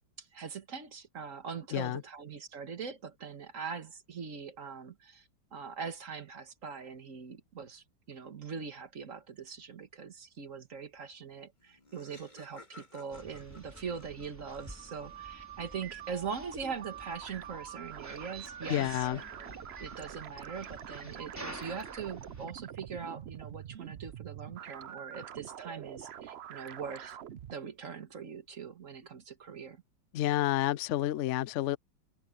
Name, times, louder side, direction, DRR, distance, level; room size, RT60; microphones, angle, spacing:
voice 1, 0.2-27.2 27.5-29.8, right 6 dB, 45° right, 1.9 m, -42 dB
Laughter, 11.3-11.4 11.6-15.2, left 2 dB, 25° left, 2.5 m, -56 dB
sound 1, 13.1-22.5, right 1 dB, 10° right, 4.2 m, -49 dB
sound 2, 14.3-27.6, right 10 dB, 70° right, 0.6 m, -46 dB
voice 2, 18.7-19.2 30.1-31.8, left 14 dB, 90° left, 0.6 m, -29 dB
omnidirectional pair, 1.9 m